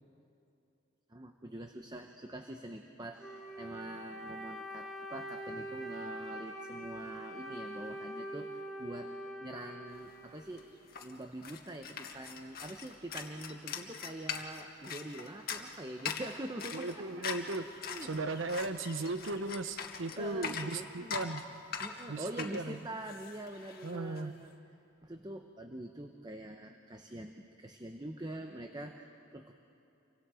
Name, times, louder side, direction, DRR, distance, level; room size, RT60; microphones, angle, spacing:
voice 1, 1.1-10.6 11.0-17.1 17.5-18.4 20.1-21.3 21.8-24.5 25.0-29.5, right 1 dB, 20° right, 5 dB, 0.9 m, -45 dB
Wind instrument woodwind instrument, 3.2-10.8, right 1 dB, ahead, 2.2 m, -44 dB
sound 1, 10.1-10.2 10.4-24.2, left 6 dB, 55° left, 1.7 m, -42 dB
voice 2, 16.7-17.7 18.0-21.5 22.1-22.8 23.8-24.3, right 2 dB, 85° right, 11 dB, 0.9 m, -37 dB
29.0 x 24.5 x 5.0 m, 2.7 s
head